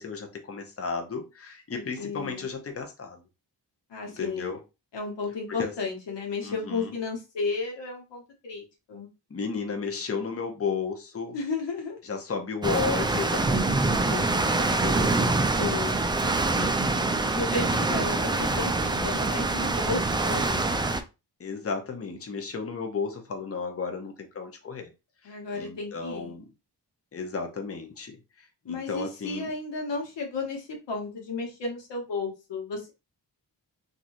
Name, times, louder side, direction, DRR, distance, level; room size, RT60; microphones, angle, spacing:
voice 1, 0.0-3.2 4.1-4.6 5.5-5.7 6.4-6.9 9.3-11.3 12.0-15.3 16.5-17.4 17.9-18.0 21.4-24.9 25.2-26.5 27.1-29.5, left 5 dB, 35° left, 4 dB, 0.8 m, -34 dB
voice 2, 1.7-2.5 3.9-4.5 4.9-9.1 11.3-12.0 15.6-16.1 17.3-20.9 25.2-26.3 28.7-32.9, left 3 dB, 85° left, 1 dB, 1.0 m, -33 dB
sound 1, 12.6-21.0, right 2 dB, 10° right, 0.3 m, -25 dB
2.9 x 2.6 x 2.6 m, 0.27 s
cardioid pair, 70°, 42 cm